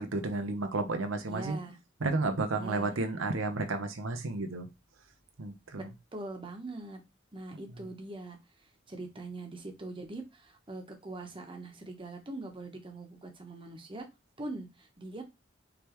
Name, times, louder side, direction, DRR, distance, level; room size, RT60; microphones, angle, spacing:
voice 1, 0.0-1.6 2.0-4.7 5.4-5.8, right 3 dB, 85° right, 0.8 m, -32 dB
voice 2, 1.3-1.8 2.6-2.9 5.7-5.8 6.1-7.0 7.3-8.4 8.9-14.1 14.4-15.2, right 2 dB, 25° right, 1.0 m, -42 dB
5.0 x 3.3 x 3.0 m
head